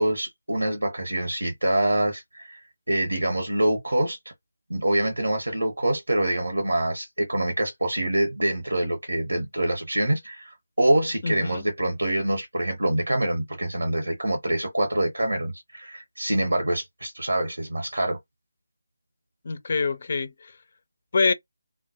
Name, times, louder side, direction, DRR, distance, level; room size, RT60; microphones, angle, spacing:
voice 1, 0.0-4.2 4.7-18.2, right 1 dB, 80° right, 0.9 m, -25 dB
voice 2, 11.2-11.6 19.4-20.5 21.1-21.3, left 4 dB, 45° left, 0.4 m, -25 dB
2.2 x 2.1 x 2.8 m
figure-of-eight pair, 155°, 0 cm